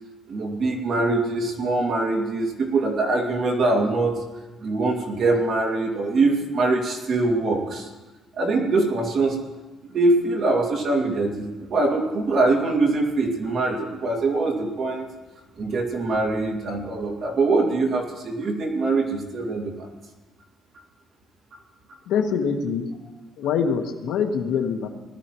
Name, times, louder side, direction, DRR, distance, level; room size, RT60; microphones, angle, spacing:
voice 1, 0.3-4.2 4.6-7.9 8.4-9.4 9.9-15.1 15.6-19.9, right 3 dB, 40° right, 0 dB, 2.3 m, -23 dB
voice 2, 22.1-22.9 23.4-24.9, left 6 dB, 75° left, 4 dB, 1.3 m, -24 dB
19.5 x 12.5 x 3.1 m, 1.1 s
cardioid pair, 170°, 0 cm